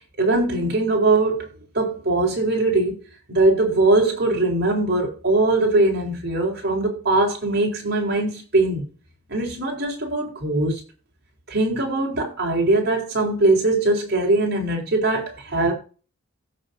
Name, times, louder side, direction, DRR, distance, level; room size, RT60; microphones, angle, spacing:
voice 1, 0.2-1.5 1.7-3.0 3.3-8.9 9.3-10.8 11.5-15.7, right 2 dB, 45° right, 4.7 m, -21 dB
17.0 x 6.7 x 2.8 m
head